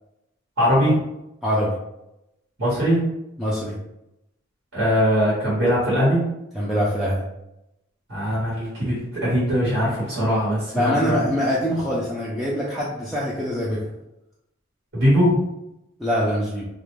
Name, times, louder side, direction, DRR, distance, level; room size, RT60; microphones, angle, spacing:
voice 1, 0.6-1.0 2.6-3.0 4.7-6.2 8.1-11.3 14.9-15.4, equal, 60° right, -8 dB, 1.2 m, -20 dB
voice 2, 1.4-1.8 3.4-3.8 6.5-7.2 10.7-13.8 16.0-16.7, equal, ahead, -8 dB, 0.3 m, -24 dB
2.4 x 2.1 x 3.1 m, 0.87 s
head